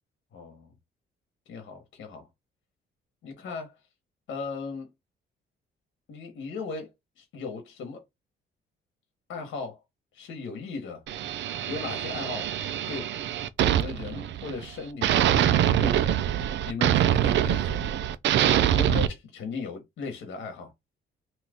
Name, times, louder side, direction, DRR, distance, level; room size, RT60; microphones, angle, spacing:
voice 1, 0.3-0.7 1.5-2.3 3.2-3.8 4.3-4.9 6.1-6.9 7.2-8.0 9.3-9.8 10.1-11.0 11.7-12.5 12.9-13.1 13.7-16.1 16.6-17.9 18.7-20.7, left 4 dB, 70° left, 1.1 m, -37 dB
sound 1, 11.1-14.7 15.0-19.1, right 11 dB, 65° right, 0.4 m, -24 dB
2.8 x 2.5 x 3.5 m
cardioid pair, 90°, 20 cm